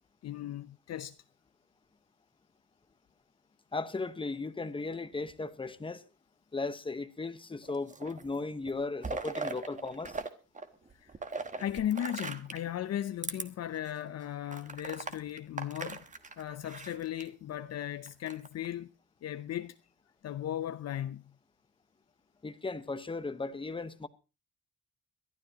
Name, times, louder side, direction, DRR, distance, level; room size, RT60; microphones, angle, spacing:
voice 1, 0.2-1.1 11.0-11.1 11.5-16.0 16.4-18.9 19.2-19.8 20.2-21.3, left 11 dB, 60° left, 0.6 m, -36 dB
voice 2, 3.7-6.0 6.5-10.2 22.4-24.1, left 3 dB, 15° left, 1.1 m, -36 dB
sound 1, 7.6-8.3 8.7-10.3 10.5-12.7 13.2-13.4 13.9-14.0 14.5-17.3 18.1-18.7, right 3 dB, 25° right, 1.3 m, -39 dB
22.5 x 12.0 x 2.9 m
cardioid pair, 90°, 30 cm